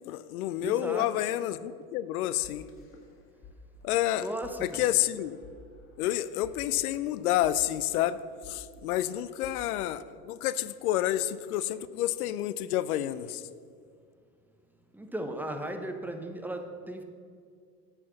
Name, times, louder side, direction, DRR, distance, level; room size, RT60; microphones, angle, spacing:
voice 1, 0.1-2.7 3.8-4.3 4.6-5.4 6.0-13.5, left 13 dB, 65° left, 0.6 m, -29 dB
voice 2, 0.6-1.1 4.2-4.8 14.9-17.0, right 1 dB, 5° right, 1.0 m, -36 dB
sound 1, 2.4-3.5 3.8-4.0 4.4-4.5 5.1-6.1 6.4-10.4, left 3 dB, 25° left, 1.9 m, -53 dB
8.9 x 6.0 x 6.9 m
hypercardioid pair, 85°, 47 cm